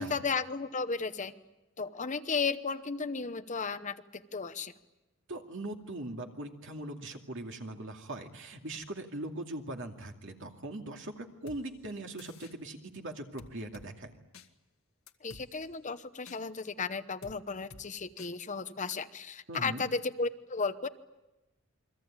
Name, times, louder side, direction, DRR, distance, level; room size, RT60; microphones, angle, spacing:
voice 1, 0.0-1.3 1.8-4.7 15.2-20.9, left 4 dB, 35° left, 10 dB, 0.9 m, -34 dB
voice 2, 5.3-14.1 19.5-19.9, right 1 dB, 60° right, 3 dB, 2.5 m, -40 dB
sound 1, 11.5-11.6 12.2-12.5 13.4-13.9 14.3-14.5 15.1-15.5 16.3-16.4 17.2-17.4 17.7-17.8 18.2-18.3 18.9-19.0, left 3 dB, 70° left, 1.7 m, -50 dB
29.0 x 23.0 x 8.9 m, 1.0 s
head